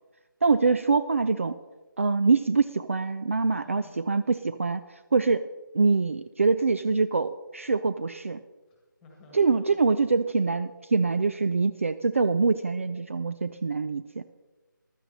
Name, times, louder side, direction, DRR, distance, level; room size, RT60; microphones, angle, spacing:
voice 1, 0.4-1.6 2.0-4.8 5.1-5.5 5.7-8.4 9.3-14.2, right 4 dB, 40° right, 11 dB, 0.4 m, -24 dB
voice 2, 3.5-4.2 8.7-10.2 10.9-11.0, left 2 dB, 5° left, -1 dB, 1.6 m, -54 dB
15.0 x 12.0 x 4.1 m, 1.2 s
figure-of-eight pair, 170°, 11 cm